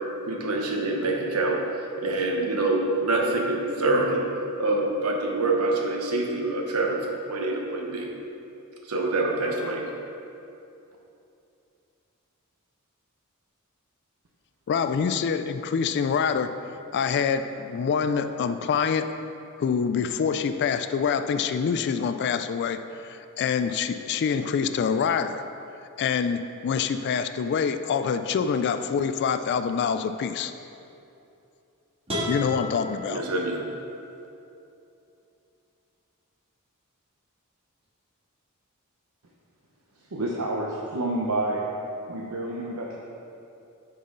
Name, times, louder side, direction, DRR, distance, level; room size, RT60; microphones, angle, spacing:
voice 1, 0.2-1.6 2.0-4.2 4.6-8.1 8.9-9.8 33.1-33.6, right 2 dB, 90° right, 1 dB, 1.0 m, -26 dB
voice 2, 14.7-16.5 16.9-19.1 19.6-25.4 26.0-30.5 32.3-33.2, left 6 dB, 50° left, 10 dB, 0.3 m, -26 dB
sound 1, 32.1-34.0, left 1 dB, 25° right, 1.7 m, -33 dB
voice 3, 40.1-41.6 42.1-42.9, right 2 dB, 70° right, -3 dB, 0.7 m, -29 dB
9.6 x 5.6 x 3.8 m, 2.7 s
head